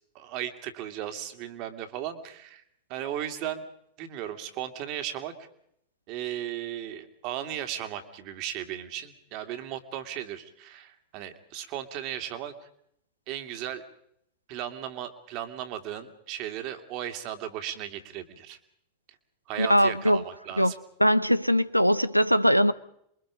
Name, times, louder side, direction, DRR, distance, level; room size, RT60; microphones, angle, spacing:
voice 1, 0.1-2.6 2.9-3.7 4.0-5.5 6.1-12.7 13.3-13.8 14.5-18.6 19.5-20.8, right 11 dB, 40° right, 2.5 m, -36 dB
voice 2, 19.6-20.2 20.6-20.7 21.0-22.7, equal, 90° left, 0.8 m, -21 dB
28.0 x 23.0 x 5.0 m
figure-of-eight pair, 90°, 0 cm